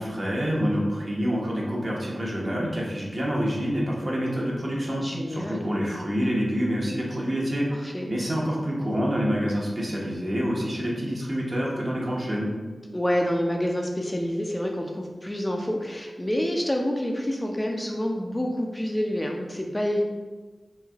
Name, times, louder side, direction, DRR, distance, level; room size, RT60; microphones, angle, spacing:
voice 1, 0.0-7.7 8.1-12.5, equal, 40° right, -3 dB, 0.7 m, -27 dB
voice 2, 5.0-5.7 7.7-8.1 12.9-20.0, equal, 20° left, 1 dB, 0.3 m, -28 dB
3.1 x 2.5 x 2.3 m, 1.4 s
wide cardioid pair, 60°, 0 cm